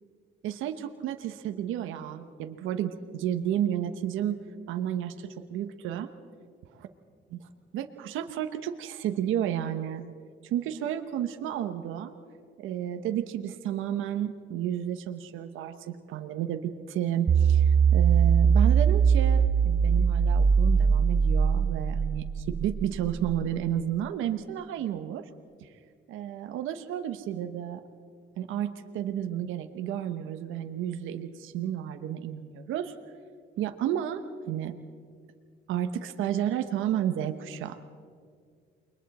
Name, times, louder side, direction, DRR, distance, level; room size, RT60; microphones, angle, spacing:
voice 1, 0.4-4.4 4.7-6.1 7.3-7.4 7.7-10.0 10.4-12.1 12.6-25.2 25.6-25.7 26.1-27.8 28.4-32.9 33.6-34.7 35.7-37.8, right 10 dB, 90° right, 8 dB, 1.0 m, -32 dB
sound 1, 17.3-23.5, right 6 dB, 40° right, 0.8 m, -22 dB
29.0 x 22.0 x 4.2 m, 2.2 s
cardioid pair, 90°, 20 cm